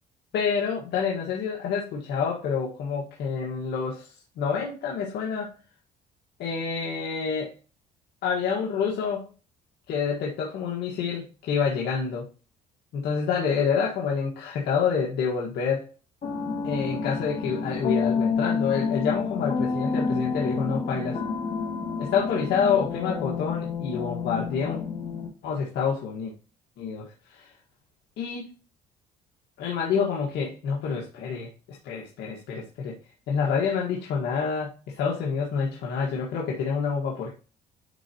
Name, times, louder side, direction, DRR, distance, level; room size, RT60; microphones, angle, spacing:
voice 1, 0.3-5.5 6.4-7.5 8.2-9.3 9.9-12.3 12.9-15.9 16.6-21.2 22.0-24.9 25.4-26.3 26.8-27.0 27.3-27.5 28.2-28.5 29.6-33.0 33.3-37.4, left 6 dB, 75° left, -2 dB, 1.6 m, -28 dB
sound 1, 16.2-25.3, left 5 dB, 45° left, 2.0 m, -29 dB
10.0 x 4.0 x 2.9 m, 0.35 s
cardioid pair, 110°, 17 cm